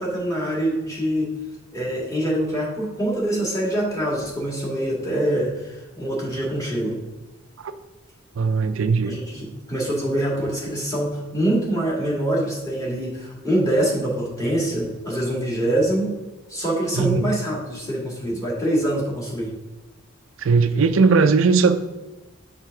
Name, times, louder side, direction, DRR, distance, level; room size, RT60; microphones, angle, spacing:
voice 1, 0.0-1.3 1.7-7.0 9.1-16.1 16.5-19.5, right 1 dB, 15° left, -5 dB, 2.0 m, -24 dB
voice 2, 8.4-9.2 16.9-17.3 20.4-21.8, right 4 dB, 65° right, 10 dB, 0.4 m, -18 dB
6.5 x 3.5 x 5.8 m, 1.2 s
head